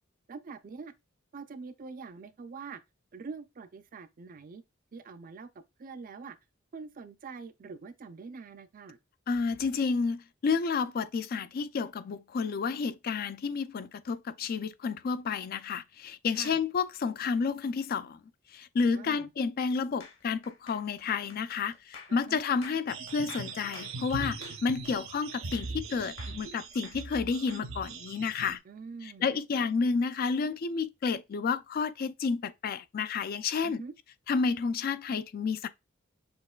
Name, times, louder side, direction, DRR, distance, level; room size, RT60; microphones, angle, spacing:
voice 1, 0.3-0.9 1.3-2.8 3.1-4.6 4.9-6.4 6.7-9.0 16.3-16.6 18.9-19.3 22.1-22.4 28.6-29.3 29.5-29.6 33.6-33.9, right 4 dB, 45° right, 0.5 m, -44 dB
voice 2, 9.3-18.2 18.5-28.6 29.0-33.8 34.3-35.7, left 5 dB, 45° left, 0.3 m, -30 dB
sound 1, 20.0-25.9 26.2-27.6, left 5 dB, 65° left, 1.3 m, -50 dB
sound 2, 22.9-28.5, right 4 dB, 80° right, 0.7 m, -40 dB
6.2 x 3.0 x 2.3 m
head